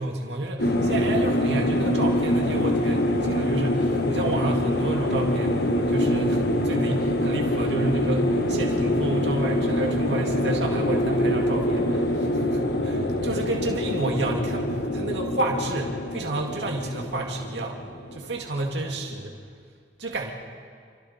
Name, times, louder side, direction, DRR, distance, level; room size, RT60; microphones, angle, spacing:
voice 1, 0.0-12.1 12.5-17.8 18.1-19.3 20.0-20.3, right 2 dB, 80° right, 0 dB, 2.2 m, -30 dB
sound 1, 0.6-19.0, left 1 dB, 65° left, 1.6 m, -25 dB
27.5 x 25.0 x 4.4 m, 2.1 s
head